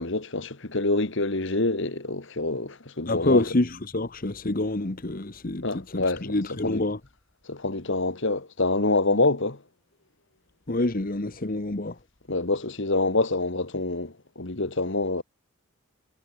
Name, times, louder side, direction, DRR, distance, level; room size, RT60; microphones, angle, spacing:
voice 1, 0.0-3.4 5.6-6.4 6.6-6.8 7.5-9.6 12.3-15.2, left 2 dB, 60° left, 1.9 m, -26 dB
voice 2, 3.1-5.6 5.9-7.0 10.7-12.0, left 2 dB, 40° left, 1.2 m, -27 dB
head